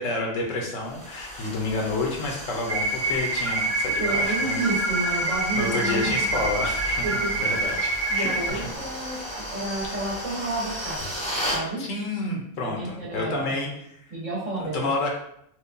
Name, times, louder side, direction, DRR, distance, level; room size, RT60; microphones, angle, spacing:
voice 1, 0.0-4.7 5.5-8.7 9.4-9.5 11.8-14.0 14.7-15.1, left 2 dB, 75° left, 0 dB, 1.1 m, -29 dB
sound 1, 0.8-11.6, equal, 5° left, 0.6 m, -35 dB
sound 2, 2.7-8.5, right 2 dB, 50° right, 0.6 m, -26 dB
voice 2, 4.0-6.2 7.0-7.3 8.1-9.2 9.5-11.0 11.5-11.8 12.6-13.7 14.1-14.9, right 2 dB, 65° right, -7 dB, 1.7 m, -30 dB
4.3 x 2.2 x 2.5 m, 0.72 s
omnidirectional pair, 1.4 m